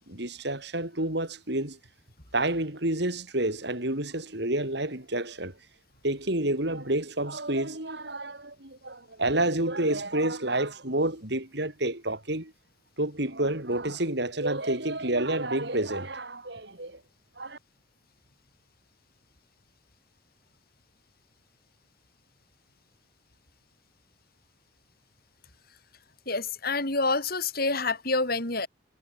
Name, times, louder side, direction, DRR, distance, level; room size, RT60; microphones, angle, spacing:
voice 1, 0.1-1.8 2.3-5.5 6.0-12.5 13.0-17.0 17.4-17.6, right 1 dB, 60° right, 4.9 m, -29 dB
voice 2, 26.3-28.7, left 3 dB, 50° left, 7.0 m, -27 dB
head